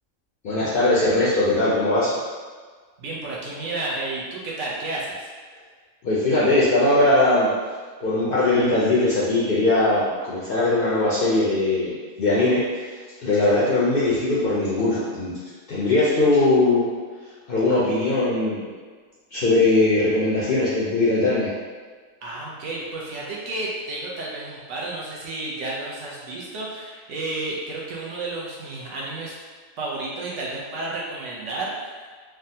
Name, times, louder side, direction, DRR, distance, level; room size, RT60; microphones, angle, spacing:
voice 1, 0.4-2.1 6.0-7.5 8.0-11.9 12.2-15.3 15.7-16.9 17.5-18.7 19.3-21.5, left 2 dB, 60° left, -8 dB, 0.6 m, -20 dB
voice 2, 3.0-5.3 22.2-29.4 29.8-32.1, right 2 dB, 65° right, -4 dB, 0.9 m, -31 dB
3.4 x 2.1 x 2.7 m, 1.5 s
omnidirectional pair, 1.4 m